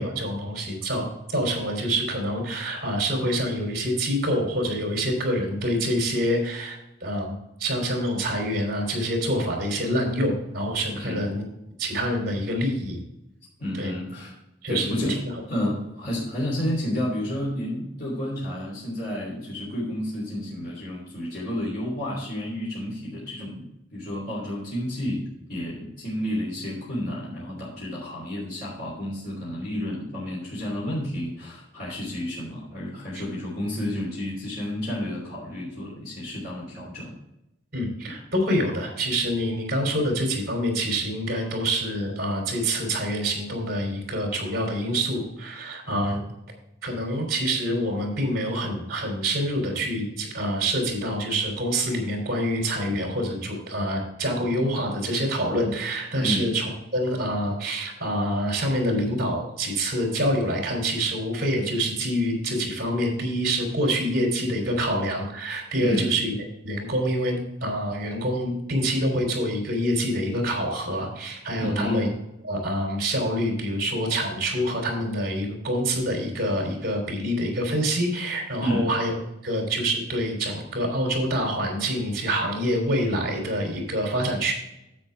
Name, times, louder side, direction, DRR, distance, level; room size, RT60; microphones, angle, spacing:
voice 1, 0.0-11.4 11.8-13.0 13.7-13.9 14.6-15.2 37.7-46.3 46.8-66.4 66.6-72.1 72.4-79.2 79.4-84.5, equal, 50° right, 1 dB, 3.5 m, -26 dB
voice 2, 10.9-11.4 13.6-14.4 14.7-15.2 15.5-25.2 25.5-37.1 56.2-56.5 65.8-66.1 71.6-72.0 78.6-78.9, left 1 dB, 50° left, -6 dB, 3.2 m, -31 dB
10.0 x 8.1 x 3.5 m, 0.88 s
head